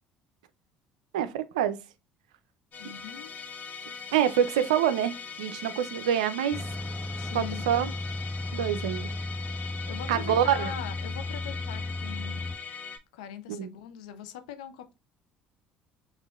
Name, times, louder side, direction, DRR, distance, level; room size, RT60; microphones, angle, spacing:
voice 1, 1.1-1.8 4.1-6.6 7.3-7.9 8.5-9.1 10.1-10.7 13.5-13.7, right 10 dB, 85° right, 0.4 m, -26 dB
Musical instrument, 2.7-13.0, left 6 dB, 45° left, 0.9 m, -41 dB
voice 2, 2.8-3.3 7.2-7.7 9.9-12.4 13.1-15.0, left 9 dB, 80° left, 0.6 m, -41 dB
sound 1, 6.5-12.6, left 2 dB, 15° left, 0.5 m, -35 dB
6.2 x 2.5 x 2.3 m
hypercardioid pair, 65°, 4 cm